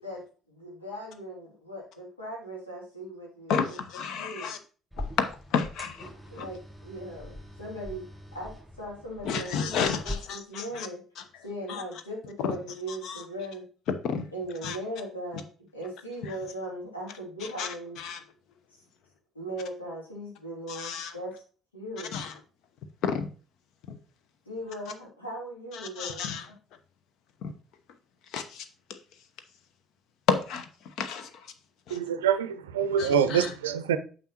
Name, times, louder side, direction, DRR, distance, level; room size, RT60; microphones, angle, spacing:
voice 1, 0.0-3.8 4.1-4.6 6.3-11.0 11.4-13.7 14.3-15.5 15.7-18.0 19.3-21.4 21.7-22.2 24.5-26.4, right 1 dB, 85° left, 2.8 m, -39 dB
voice 2, 3.5-4.6 5.0-6.1 6.4-6.5 9.2-10.9 11.7-11.8 13.0-13.2 14.0-14.3 14.6-14.8 17.6-18.2 20.7-21.1 22.1-22.3 23.0-23.3 23.9-24.0 25.7-26.4 27.4-27.5 28.3-28.6 30.3-30.7 31.0-31.3 31.9-32.0 33.0-33.5, left 6 dB, 55° left, 0.9 m, -31 dB
sound 1, 4.9-10.1, left 1 dB, ahead, 4.7 m, -42 dB
voice 3, 31.9-34.0, right 8 dB, 75° right, 0.5 m, -25 dB
9.1 x 6.5 x 3.0 m
figure-of-eight pair, 50°, 0 cm